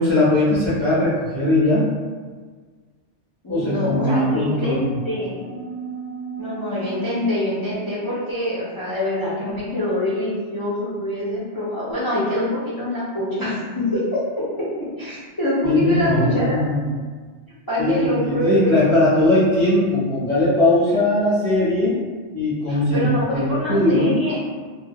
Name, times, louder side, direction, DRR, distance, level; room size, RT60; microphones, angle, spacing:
voice 1, 0.0-1.9 3.5-5.0 15.6-16.9 17.8-22.0 22.3-24.2, left 1 dB, 35° right, -11 dB, 0.5 m, -19 dB
voice 2, 3.4-5.5 6.4-14.1 14.6-14.7 15.0-16.6 17.7-18.7 20.9-21.0 22.7-24.4, left 1 dB, 35° left, -11 dB, 0.3 m, -25 dB
sound 1, 3.5-8.7, left 1 dB, 70° left, 0.8 m, -35 dB
2.3 x 2.0 x 2.7 m, 1.5 s
omnidirectional pair, 1.2 m